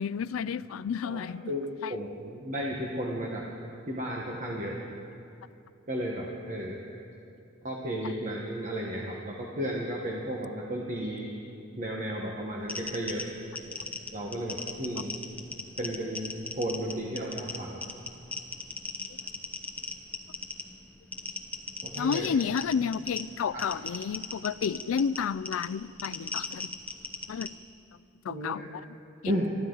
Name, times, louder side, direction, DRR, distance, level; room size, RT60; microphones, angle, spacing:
voice 1, 0.0-1.5 1.8-1.9 19.1-19.2 22.0-26.7 27.3-27.5 28.2-28.8 29.2-29.3, left 6 dB, 80° left, 18 dB, 0.4 m, -31 dB
voice 2, 1.0-3.4 3.9-4.9 5.9-6.8 7.6-11.5 11.8-13.3 14.1-15.2 15.8-17.8 21.8-22.3 23.5-23.6 28.3-28.8 29.2-29.6, equal, 40° right, -2 dB, 1.3 m, -34 dB
sound 1, 12.6-27.5, left 3 dB, 10° left, 0.9 m, -39 dB
24.0 x 13.0 x 3.9 m, 2.8 s
head